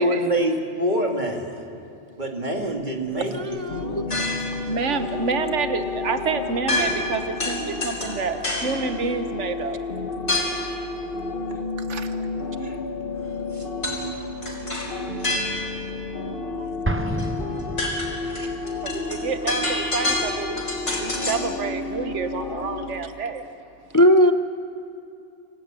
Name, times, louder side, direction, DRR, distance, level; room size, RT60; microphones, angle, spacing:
voice 1, 0.0-1.5 2.2-3.6 18.3-18.5, right 1 dB, 40° right, 2 dB, 2.4 m, -25 dB
voice 2, 3.3-4.0 23.9-24.3, equal, 20° left, 8 dB, 0.5 m, -18 dB
sound 1, 3.7-23.0, left 3 dB, 50° left, 1.4 m, -31 dB
sound 2, 4.1-4.6 6.7-7.1 7.4-8.8 10.3-10.7 13.8-14.0 14.4-15.8 17.2-17.3 17.6-21.5, left 2 dB, 80° left, 4.5 m, -27 dB
voice 3, 4.7-9.8 11.9-12.1 14.5-14.6 18.8-23.4, right 4 dB, 85° right, 9 dB, 1.4 m, -28 dB
Explosion, 16.8-18.5, right 2 dB, 15° right, 0.7 m, -29 dB
27.0 x 17.0 x 9.0 m, 2.6 s
omnidirectional pair, 1.2 m